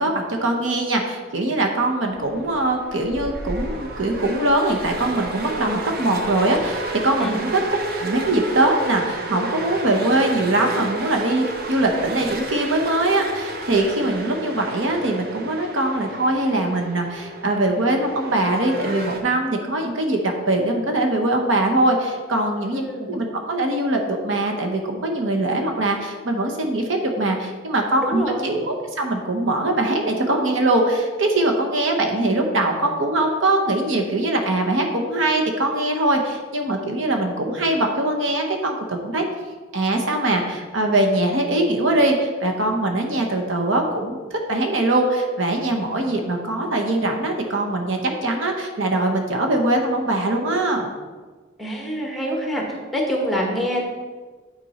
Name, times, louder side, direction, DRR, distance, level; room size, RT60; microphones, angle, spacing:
voice 1, 0.0-7.6 8.0-22.8 23.1-39.2 39.7-50.9, right 2 dB, 75° right, 2 dB, 1.0 m, -22 dB
sound 1, 2.1-19.2, right 2 dB, 50° right, 0.7 m, -32 dB
voice 2, 22.7-23.2 28.0-28.5 51.6-52.6 52.9-53.8, equal, ahead, -1 dB, 1.2 m, -25 dB
8.6 x 4.4 x 4.2 m, 1.4 s
head